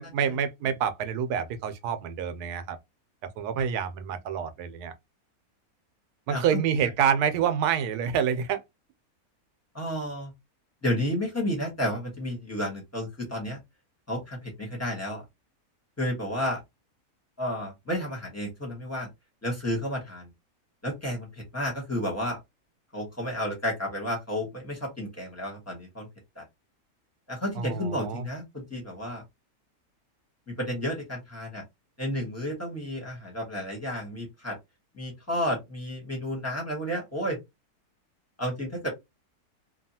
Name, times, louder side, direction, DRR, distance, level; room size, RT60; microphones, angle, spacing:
voice 1, 0.0-2.8 3.4-4.9 6.3-8.6 27.6-28.2, right 8 dB, 90° right, 1.1 m, -27 dB
voice 2, 6.3-6.9 9.7-10.3 10.8-13.6 14.1-15.2 16.0-16.6 17.4-19.1 19.4-20.3 20.8-22.4 22.9-26.1 26.4-26.5 27.3-29.2 30.5-31.6 32.0-34.6 34.9-37.4 38.4-38.9, equal, 10° left, 1.0 m, -31 dB
2.8 x 2.3 x 2.7 m
omnidirectional pair, 1.6 m